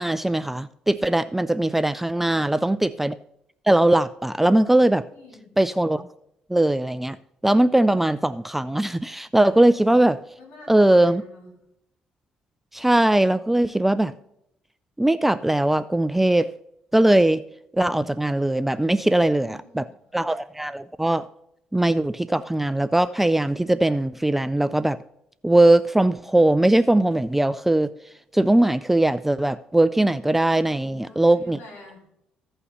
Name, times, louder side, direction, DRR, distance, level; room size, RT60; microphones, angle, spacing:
voice 1, 0.0-3.2 3.7-5.0 5.6-6.1 6.5-7.2 7.4-10.2 10.7-11.2 12.7-14.1 15.0-16.5 16.9-17.4 17.7-19.8 20.1-21.3 21.7-25.0 25.4-27.9 28.3-31.6, right 1 dB, 5° right, 14 dB, 0.3 m, -20 dB
voice 2, 2.2-2.7 5.1-5.5 10.4-11.5 19.4-19.9 30.7-32.1, left 2 dB, 75° left, 1 dB, 4.0 m, -47 dB
15.5 x 5.6 x 4.1 m, 0.78 s
cardioid pair, 90°, 3 cm